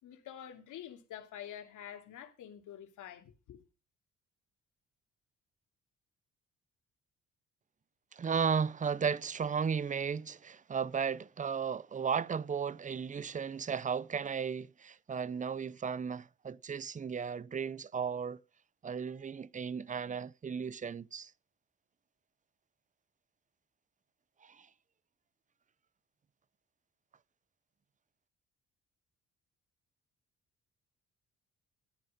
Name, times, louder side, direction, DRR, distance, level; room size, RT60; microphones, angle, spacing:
voice 1, 0.0-3.6, left 10 dB, 80° left, 2.8 m, -47 dB
voice 2, 8.1-18.4 18.8-21.3 24.4-24.7, right 6 dB, 25° right, 0.5 m, -35 dB
13.0 x 9.6 x 5.3 m
cardioid pair, 90°, 30 cm